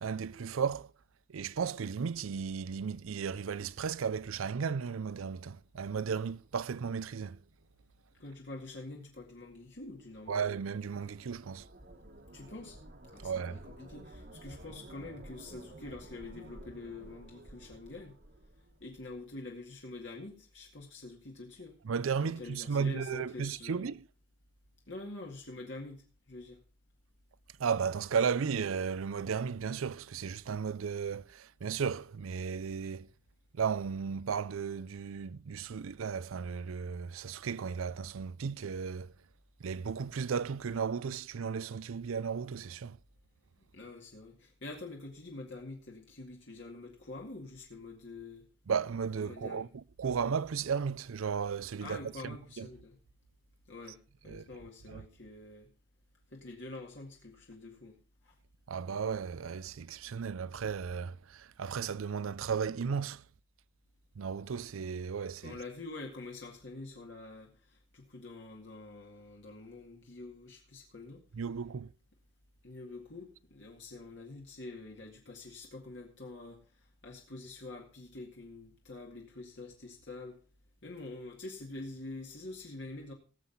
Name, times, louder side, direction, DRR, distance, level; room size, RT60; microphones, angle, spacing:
voice 1, 0.0-0.9 1.3-7.4 10.3-11.6 13.2-13.6 21.9-24.0 27.6-33.1 33.5-39.1 39.6-43.0 48.7-49.7 50.0-52.7 54.3-54.4 54.9-55.0 58.7-63.2 64.2-65.6 71.4-71.9, right 6 dB, 85° right, 0.5 m, -35 dB
voice 2, 8.2-10.4 12.3-12.8 13.1-18.2 18.8-21.8 22.2-23.9 24.9-26.6 43.7-48.4 49.2-49.7 51.8-53.0 53.7-55.7 56.3-58.0 58.2-58.4 65.4-71.2 72.6-80.4 80.8-83.1, left 2 dB, 60° left, 2.0 m, -46 dB
sound 1, 9.9-19.2, right 1 dB, 50° right, 1.5 m, -52 dB
18.0 x 7.6 x 4.0 m
head